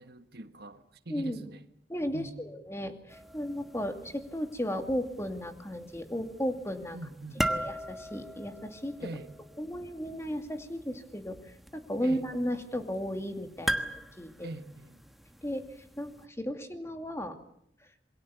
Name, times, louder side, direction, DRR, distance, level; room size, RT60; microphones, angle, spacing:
voice 1, 0.0-1.6 2.1-2.4 6.9-7.4 9.0-9.3 12.0-12.2 14.4-15.0, right 2 dB, 60° right, 1.4 m, -43 dB
voice 2, 1.1-1.4 1.9-7.0 7.5-9.1 9.6-14.5 15.4-17.4, equal, 15° left, 2.3 m, -35 dB
sound 1, 3.1-16.3, right 1 dB, ahead, 1.3 m, -40 dB
27.5 x 23.0 x 7.0 m
head